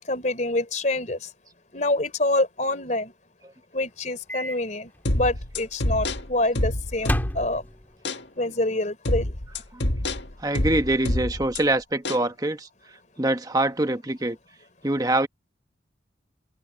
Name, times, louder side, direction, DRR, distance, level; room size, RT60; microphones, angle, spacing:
voice 1, 0.1-1.3 1.7-3.1 3.7-7.6 8.4-9.3, left 2 dB, 40° left, 3.7 m, -26 dB
Microwave oven, 4.3-4.6 4.9-5.1 7.0-8.0, left 1 dB, 10° left, 2.2 m, -32 dB
sound 1, 5.1-7.6 8.1-8.2 9.1-11.6 12.1-12.3, left 1 dB, 70° left, 1.8 m, -27 dB
voice 2, 10.4-14.4 14.8-15.3, right 1 dB, 20° right, 1.3 m, -25 dB
head